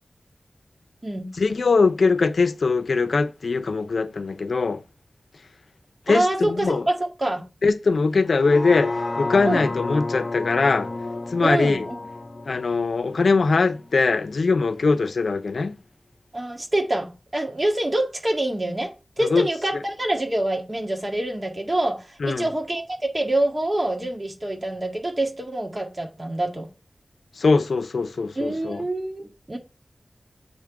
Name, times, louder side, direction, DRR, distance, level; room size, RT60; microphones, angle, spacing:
voice 1, 1.4-4.8 6.1-6.9 7.6-10.9 11.3-11.9 12.5-15.8 19.2-19.5 22.2-22.5 27.4-28.8, left 4 dB, 85° left, 0.5 m, -21 dB
voice 2, 6.1-7.4 9.4-9.7 11.4-12.0 16.3-18.9 19.2-26.7 28.4-29.6, right 1 dB, 35° right, 1.8 m, -26 dB
sound 1, 8.3-14.4 14.8-14.9, left 2 dB, 55° left, 0.9 m, -32 dB
7.9 x 3.7 x 4.6 m
cardioid pair, 50°, 0 cm